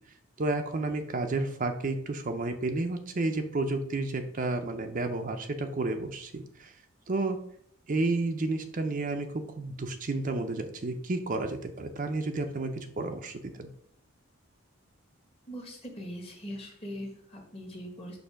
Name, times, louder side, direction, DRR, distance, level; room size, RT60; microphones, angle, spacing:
voice 1, 0.4-6.7 7.1-7.4 7.9-13.7, right 2 dB, 40° right, 5 dB, 0.5 m, -31 dB
voice 2, 15.5-18.2, equal, 25° left, 2 dB, 1.2 m, -41 dB
6.6 x 2.7 x 5.7 m, 0.67 s
head